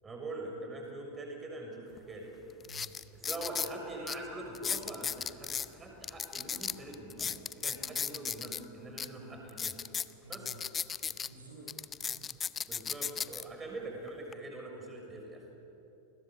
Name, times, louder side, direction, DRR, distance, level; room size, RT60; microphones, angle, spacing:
voice 1, 0.0-2.3 3.1-9.7 10.3-10.5 12.7-15.4, right 2 dB, 15° right, 2 dB, 6.4 m, -43 dB
sound 1, 2.0-2.1 2.6-3.7 4.1-4.2 4.5-5.7 6.0-8.6 9.0-9.1 9.5-11.3 11.7-13.4 14.1-14.3, left 7 dB, 20° left, 0.6 m, -35 dB
voice 2, 2.6-3.0 9.2-9.3 10.2-10.6 11.3-11.7 12.0-12.3, right 3 dB, 75° right, 0 dB, 5.3 m, -52 dB
29.0 x 21.5 x 8.4 m, 2.8 s
figure-of-eight pair, 90°, 0 cm